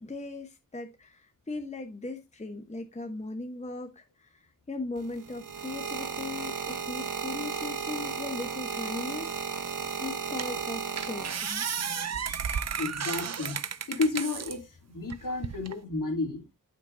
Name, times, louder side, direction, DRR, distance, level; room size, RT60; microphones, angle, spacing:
voice 1, 0.0-9.7 10.0-11.7, left 2 dB, 20° left, 1.1 m, -39 dB
sound 1, 5.0-11.8 12.6-12.9, right 6 dB, 65° right, 1.6 m, -35 dB
sound 2, 9.7-9.8 10.4-10.6 11.0-14.6 15.1-15.8, right 7 dB, 50° right, 0.7 m, -33 dB
voice 2, 12.8-13.6 13.9-16.4, left 3 dB, 65° left, 3.1 m, -31 dB
8.9 x 7.3 x 2.7 m
wide cardioid pair, 110°, 34 cm